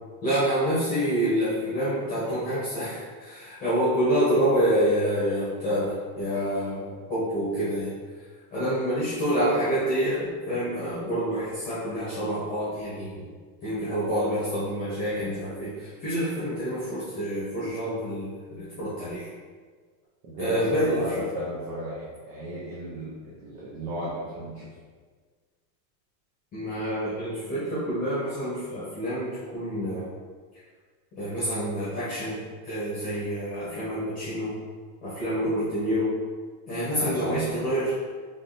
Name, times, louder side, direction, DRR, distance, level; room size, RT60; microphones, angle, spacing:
voice 1, 0.2-8.3 8.5-13.2 13.6-19.3 20.4-21.3 26.5-30.1 31.1-34.6 35.0-36.2 36.7-37.9, equal, 15° left, -11 dB, 1.2 m, -27 dB
voice 2, 20.2-24.7 37.0-37.6, right 1 dB, 35° right, -7 dB, 0.8 m, -34 dB
3.6 x 3.6 x 4.0 m, 1.5 s
supercardioid pair, 180°, 50 cm